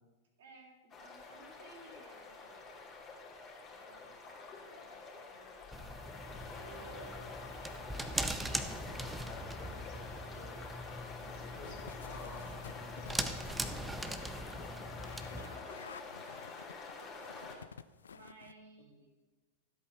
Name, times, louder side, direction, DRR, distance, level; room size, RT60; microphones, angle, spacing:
voice 1, 0.4-2.8 3.8-5.7 6.5-7.3 7.6-8.4 11.2-11.8 15.2-15.9 18.1-19.1, right 3 dB, 60° right, 0 dB, 3.0 m, -57 dB
sound 1, 0.9-17.6, left 4 dB, 25° left, 2.7 m, -47 dB
sound 2, 5.7-15.6, right 1 dB, 10° right, 0.9 m, -41 dB
voice 2, 8.7-10.6 11.3-13.8 18.8-19.1, left 4 dB, 40° left, 0 dB, 3.2 m, -53 dB
sound 3, 11.6-18.5, left 7 dB, 70° left, 0.4 m, -52 dB
13.5 x 8.4 x 6.1 m, 1.2 s
figure-of-eight pair, 90°, 0 cm